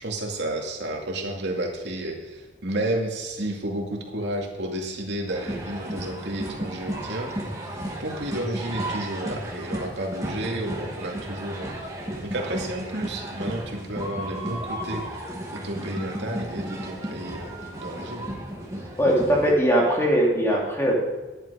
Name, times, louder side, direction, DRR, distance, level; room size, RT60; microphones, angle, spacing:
voice 1, 0.0-7.3 8.0-11.9 12.2-18.3, right 1 dB, 75° right, 0 dB, 2.4 m, -31 dB
sound 1, 5.3-19.5, right 1 dB, 20° right, 2.0 m, -34 dB
voice 2, 19.0-20.9, equal, 15° left, -3 dB, 2.8 m, -20 dB
11.0 x 10.5 x 5.0 m, 1.2 s
head